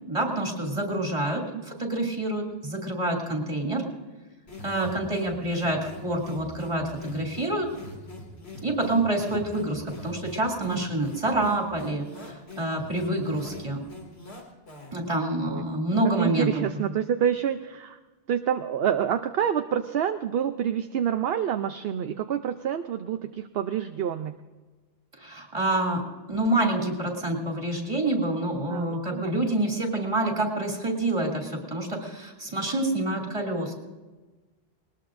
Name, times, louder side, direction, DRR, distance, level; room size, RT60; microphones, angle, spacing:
voice 1, 0.1-3.8 4.6-7.7 8.6-13.8 14.9-16.9 25.1-26.0 26.3-33.7, right 1 dB, 30° right, -1 dB, 2.7 m, -27 dB
sound 1, 4.5-15.1, left 2 dB, 75° left, 2.8 m, -43 dB
voice 2, 4.8-5.2 10.6-10.8 15.5-15.6 16.2-18.0 18.3-24.4 28.7-29.5, right 9 dB, 70° right, 8 dB, 0.8 m, -28 dB
20.0 x 20.0 x 2.6 m, 1.2 s
omnidirectional pair, 1.1 m